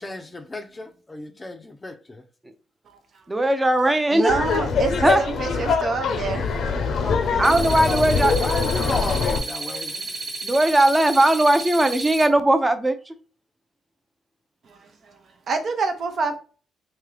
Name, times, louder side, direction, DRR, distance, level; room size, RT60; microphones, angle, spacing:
voice 1, 0.0-2.2 7.0-10.1, left 2 dB, 20° left, 0.6 m, -34 dB
voice 2, 3.3-4.3 5.0-5.2 7.4-8.3 10.4-13.1, right 1 dB, 15° right, 0.6 m, -19 dB
voice 3, 4.1-6.4 15.5-16.4, right 4 dB, 55° right, 0.7 m, -26 dB
Laughter, 4.3-9.4, left 5 dB, 65° left, 0.7 m, -23 dB
sound 1, 7.4-12.3, right 3 dB, 40° right, 1.1 m, -32 dB
3.6 x 2.8 x 3.2 m
cardioid pair, 90°, 0 cm